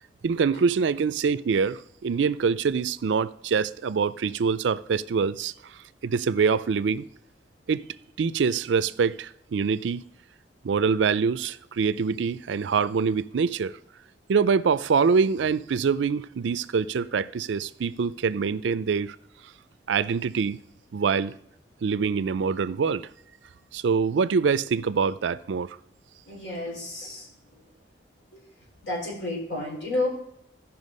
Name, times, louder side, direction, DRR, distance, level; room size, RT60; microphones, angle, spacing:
voice 1, 0.2-7.1 7.7-7.8 8.2-10.0 10.6-13.8 14.3-19.2 19.9-20.6 20.9-21.4 21.8-23.1 23.7-25.8, right 5 dB, 80° right, 0.4 m, -25 dB
voice 2, 26.2-27.3 28.8-30.1, left 2 dB, 75° left, 4.6 m, -30 dB
14.5 x 5.6 x 5.4 m
head